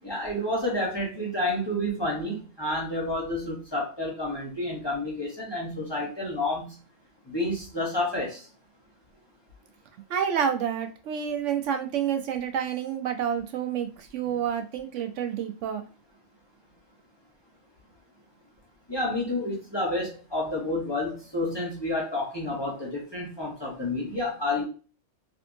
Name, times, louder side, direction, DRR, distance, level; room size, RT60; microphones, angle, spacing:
voice 1, 0.0-6.8 7.3-8.4 18.9-24.6, left 1 dB, 25° left, -3 dB, 0.8 m, -30 dB
voice 2, 10.1-15.8, right 8 dB, 75° right, 6 dB, 0.9 m, -29 dB
3.5 x 2.7 x 2.6 m, 0.34 s
omnidirectional pair, 1.3 m